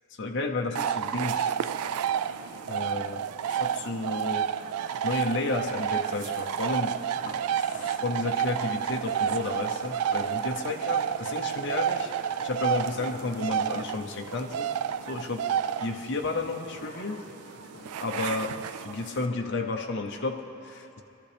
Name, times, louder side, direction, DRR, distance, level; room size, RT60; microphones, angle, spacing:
voice 1, 0.2-1.6 2.7-4.5 5.0-7.2 7.6-12.1 12.4-14.7 15.1-17.2 18.0-21.0, left 3 dB, 55° left, 1 dB, 0.7 m, -32 dB
sound 1, 0.8-19.3, right 9 dB, 90° right, 0.3 m, -30 dB
sound 2, 1.3-20.4, left 2 dB, 35° left, 1.1 m, -48 dB
22.5 x 13.0 x 3.4 m, 2.8 s
head